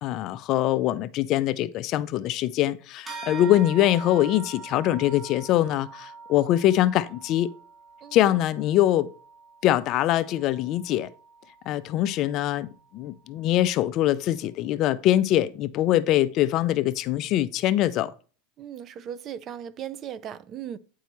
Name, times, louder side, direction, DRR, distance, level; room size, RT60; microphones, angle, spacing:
voice 1, 0.0-7.5 8.1-9.1 9.6-11.1 11.7-18.1, left 13 dB, 45° left, 0.4 m, -23 dB
sound 1, 3.1-12.9, right 4 dB, 20° right, 2.8 m, -44 dB
voice 2, 8.0-8.4 18.6-20.8, right 9 dB, 35° right, 0.4 m, -37 dB
9.3 x 4.6 x 3.0 m
supercardioid pair, 135°, 0 cm